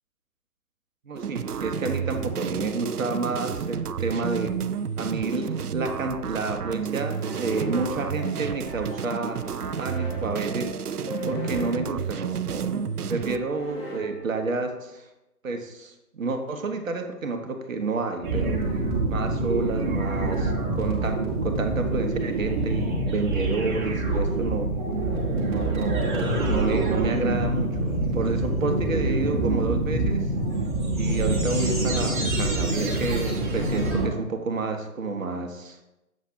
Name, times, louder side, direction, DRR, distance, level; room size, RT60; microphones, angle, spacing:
voice 1, 1.0-4.6 5.0-9.4 9.8-15.1 15.4-18.6 19.1-24.7 25.5-30.3 30.9-35.8, right 3 dB, 60° right, 5 dB, 1.1 m, -30 dB
sound 1, 1.2-13.4, right 7 dB, 85° right, 0.5 m, -31 dB
sound 2, 7.2-14.9, equal, 5° left, 0.7 m, -39 dB
sound 3, 18.2-34.1, right 2 dB, 35° right, 1.6 m, -26 dB
7.9 x 7.3 x 2.8 m, 0.90 s
figure-of-eight pair, 140°, 45 cm